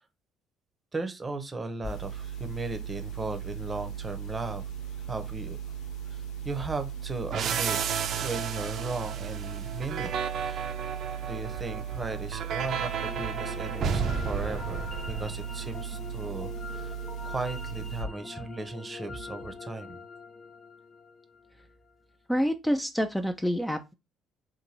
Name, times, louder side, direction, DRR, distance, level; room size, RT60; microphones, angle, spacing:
voice 1, 0.9-4.7 5.1-5.6 6.1-10.1 10.4-10.7 11.3-17.0 17.2-20.0, right 3 dB, 25° right, 0.7 m, -36 dB
sound 1, 1.8-18.0, right 8 dB, 70° left, 0.7 m, -38 dB
sound 2, 7.3-15.8, right 7 dB, 60° right, 0.5 m, -33 dB
sound 3, 12.6-21.7, left 4 dB, 35° left, 0.9 m, -43 dB
voice 2, 22.3-23.9, equal, 5° left, 0.4 m, -27 dB
3.8 x 2.6 x 2.9 m
hypercardioid pair, 55°, 0 cm